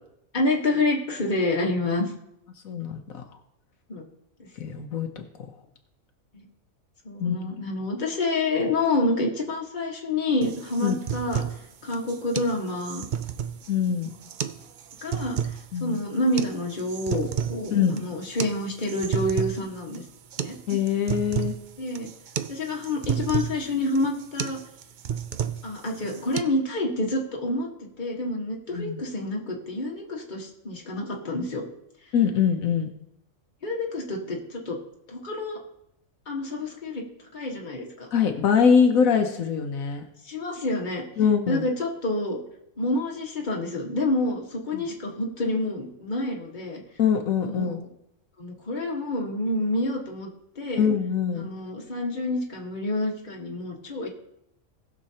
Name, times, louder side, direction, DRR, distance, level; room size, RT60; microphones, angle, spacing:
voice 1, 0.3-2.1 3.9-4.0 6.3-6.5 7.0-11.4 11.8-13.1 15.0-15.4 15.8-20.0 20.4-20.6 21.8-22.1 22.5-24.6 25.6-31.6 33.6-34.8 35.1-35.6 36.3-37.0 37.3-38.1 40.2-41.0 41.5-42.4 42.8-46.8 47.4-47.8 48.4-50.3 50.5-50.9 51.3-54.1, left 2 dB, 35° left, -1 dB, 1.6 m, -28 dB
voice 2, 2.6-3.2 4.6-5.1 7.2-7.4 10.8-11.0 13.7-14.1 15.7-16.0 17.7-18.0 20.7-21.5 28.7-29.0 32.1-32.9 38.1-40.0 41.2-41.7 44.7-44.8 47.0-47.8 50.8-51.5, left 7 dB, 80° left, 5 dB, 1.3 m, -23 dB
sound 1, 10.4-26.4, right 9 dB, 70° right, 0.4 m, -32 dB
19.0 x 6.6 x 2.8 m, 0.80 s
omnidirectional pair, 1.4 m